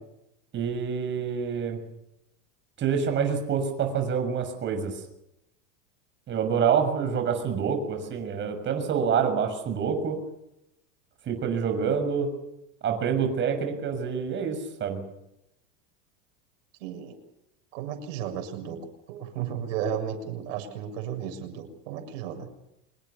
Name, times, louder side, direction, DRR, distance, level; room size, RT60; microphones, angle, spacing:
voice 1, 0.5-1.8 2.8-5.0 6.3-10.2 11.3-12.3 12.8-15.0, right 6 dB, 30° right, 6 dB, 6.6 m, -27 dB
voice 2, 16.8-17.2 17.7-18.8 19.1-22.5, right 8 dB, 75° right, 5 dB, 7.1 m, -34 dB
26.0 x 23.0 x 7.0 m, 0.84 s
supercardioid pair, 155°, 38 cm